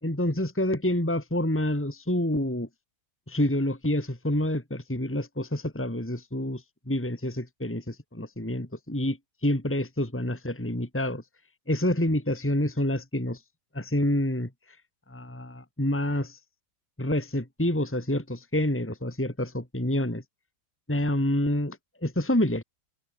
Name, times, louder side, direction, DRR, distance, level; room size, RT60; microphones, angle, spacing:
voice 1, 0.0-2.7 3.3-9.2 9.4-11.2 11.7-13.4 13.7-14.5 15.1-16.4 17.0-20.2 20.9-22.6, left 1 dB, 5° left, 2.7 m, -27 dB
omnidirectional pair, 1.8 m